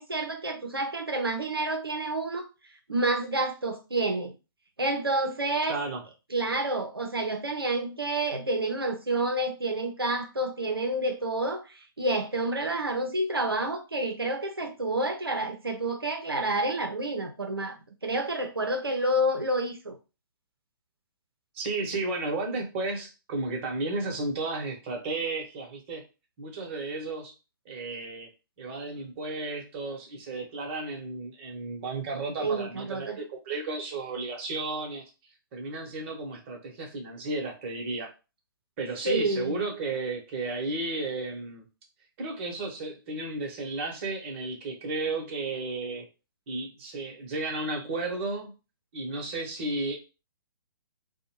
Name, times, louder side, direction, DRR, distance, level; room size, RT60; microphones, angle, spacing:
voice 1, 0.0-2.5 2.9-4.3 4.8-5.8 6.3-17.8 18.0-20.0 32.4-33.2 39.0-39.6, right 1 dB, 90° right, 0.5 m, -29 dB
voice 2, 5.7-6.0 21.5-26.0 26.4-27.3 27.7-28.3 28.6-35.0 35.5-38.1 38.8-41.6 42.2-46.1 46.5-48.5 48.9-50.0, right 3 dB, 30° right, 0.8 m, -33 dB
2.6 x 2.1 x 2.9 m
figure-of-eight pair, 125°, 12 cm